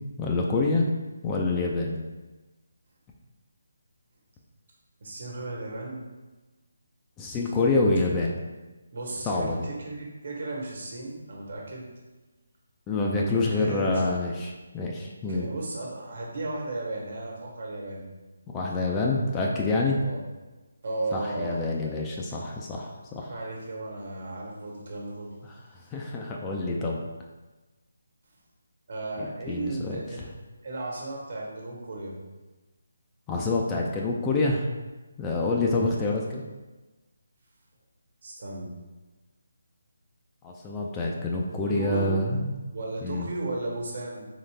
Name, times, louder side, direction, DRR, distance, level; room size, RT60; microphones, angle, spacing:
voice 1, 0.2-0.8 1.2-2.0 7.2-8.4 9.3-9.6 12.9-15.5 18.5-20.0 21.1-23.3 25.4-25.6 25.9-27.0 29.2-30.0 33.3-34.7 35.2-36.4 40.4-42.5 43.0-43.3, left 2 dB, 15° left, -2 dB, 0.4 m, -27 dB
voice 2, 5.0-6.1 8.0-8.3 8.9-11.9 13.1-14.0 15.3-18.1 20.0-20.2 20.8-21.6 23.2-25.4 28.9-30.2 30.6-32.2 35.4-35.7 38.2-38.7 41.6-42.2 42.7-44.3, right 2 dB, 60° right, -2 dB, 1.3 m, -35 dB
3.9 x 3.1 x 3.3 m, 1.2 s
figure-of-eight pair, 160°, 0 cm